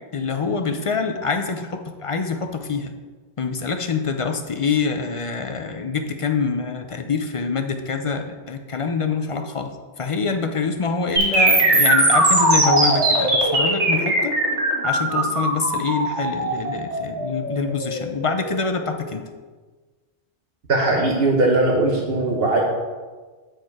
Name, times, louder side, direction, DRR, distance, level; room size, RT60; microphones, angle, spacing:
voice 1, 0.1-2.9 3.4-14.3 14.8-19.2, left 5 dB, 45° left, 5 dB, 0.4 m, -25 dB
sound 1, 11.2-19.1, right 1 dB, 85° right, 1.8 m, -19 dB
voice 2, 20.7-22.6, right 2 dB, 60° right, -1 dB, 1.1 m, -19 dB
7.7 x 4.5 x 4.7 m, 1.4 s
omnidirectional pair, 1.2 m